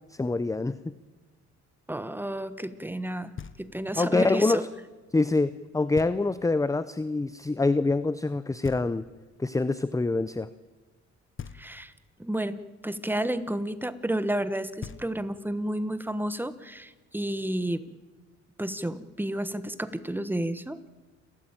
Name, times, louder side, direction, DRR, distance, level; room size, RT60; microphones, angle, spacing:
voice 1, 0.1-0.8 4.0-4.7 5.1-9.1 9.4-10.5, left 3 dB, 10° left, 15 dB, 0.7 m, -25 dB
voice 2, 1.9-3.3 3.6-4.6 11.5-11.9 12.2-12.6 12.8-17.8 18.6-20.9, right 1 dB, 5° right, 13 dB, 1.3 m, -31 dB
Knock, 3.4-4.0 6.0-6.6 8.6-9.4 11.4-12.1 14.4-14.5 14.8-15.6, left 7 dB, 40° left, 1.2 m, -43 dB
29.0 x 13.5 x 9.0 m, 1.2 s
cardioid pair, 90°, 30 cm